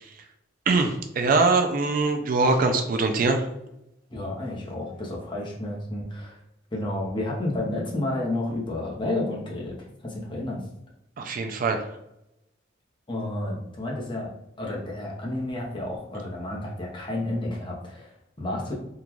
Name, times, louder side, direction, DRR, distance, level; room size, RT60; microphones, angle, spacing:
voice 1, 0.7-3.4 11.2-11.8, right 3 dB, 50° right, 5 dB, 0.4 m, -22 dB
voice 2, 4.1-6.4 6.7-10.6 13.1-14.3 14.6-18.7, left 1 dB, 25° left, -3 dB, 0.8 m, -31 dB
3.7 x 2.3 x 3.0 m, 0.84 s
head